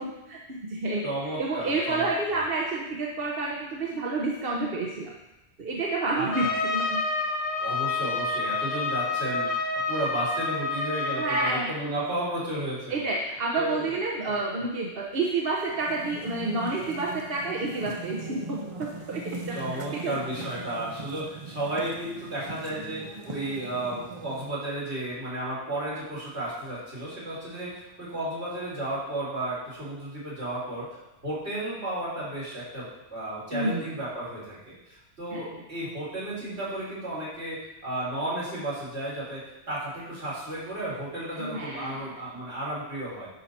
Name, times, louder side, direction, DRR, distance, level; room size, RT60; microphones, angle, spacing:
voice 1, 0.0-5.1 5.6-6.5 6.7-7.0 11.2-11.7 12.9-20.2 33.5-33.9 35.3-35.6 41.3-42.0, right 3 dB, 60° right, -2 dB, 1.2 m, -29 dB
voice 2, 1.0-2.1 6.1-6.5 7.6-13.0 13.5-14.0 14.3-14.4 19.5-43.3, right 1 dB, 80° right, -7 dB, 3.9 m, -33 dB
Trumpet, 6.3-11.6, left 3 dB, 40° left, 1.2 m, -28 dB
sound 1, 15.7-24.6, right 3 dB, 35° right, 0.6 m, -40 dB
11.0 x 5.6 x 4.3 m, 0.95 s
omnidirectional pair, 1.1 m